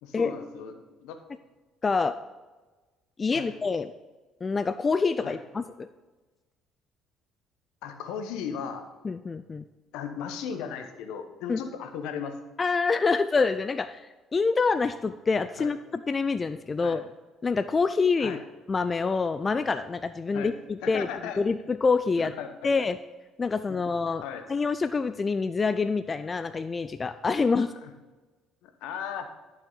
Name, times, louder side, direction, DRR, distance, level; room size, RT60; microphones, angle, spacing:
voice 1, 0.0-1.2 3.3-3.5 5.2-5.4 7.8-8.8 9.9-12.4 15.6-15.7 16.8-17.0 18.2-18.4 20.3-20.5 20.8-21.4 22.2-22.7 24.2-24.5 27.8-27.9 28.6-29.3, left 7 dB, 70° left, 8 dB, 1.0 m, -36 dB
voice 2, 1.8-2.2 3.2-3.9 4.4-5.9 9.0-9.6 11.5-11.6 12.6-17.0 17.4-18.4 18.7-21.1 21.4-22.3 22.6-23.0 23.4-24.2 24.5-27.7, left 4 dB, 30° left, 13 dB, 0.4 m, -26 dB
11.5 x 7.1 x 3.9 m, 1.2 s
hypercardioid pair, 55°, 0 cm